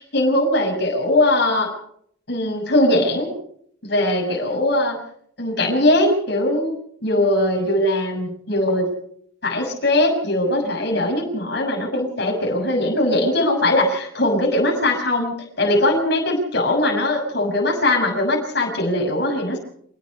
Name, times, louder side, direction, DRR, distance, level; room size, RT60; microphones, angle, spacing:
voice 1, 0.0-1.7 2.3-3.3 3.8-5.0 5.4-6.7 7.0-8.9 9.4-19.6, left 1 dB, 55° left, 0 dB, 6.4 m, -20 dB
27.0 x 18.5 x 5.5 m, 0.66 s
head